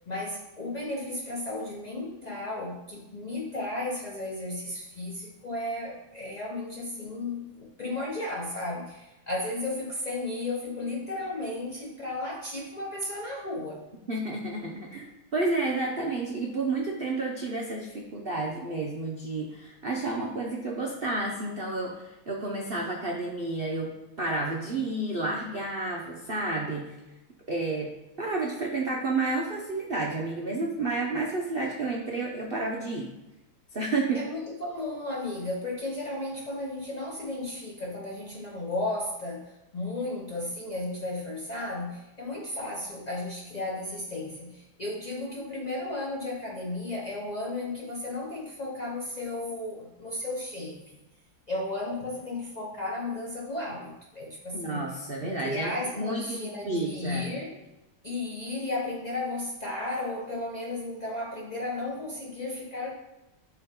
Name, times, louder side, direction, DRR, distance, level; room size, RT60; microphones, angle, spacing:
voice 1, 0.1-13.8 34.1-51.0 51.5-54.9 55.2-57.6 58.0-62.9, left 2 dB, 65° left, -4 dB, 0.4 m, -34 dB
voice 2, 14.1-23.9 24.2-26.9 27.5-27.9 28.2-33.1 33.7-34.2 54.5-57.4, right 2 dB, 75° right, -1 dB, 0.5 m, -31 dB
11.5 x 3.9 x 3.7 m, 0.99 s
omnidirectional pair, 2.3 m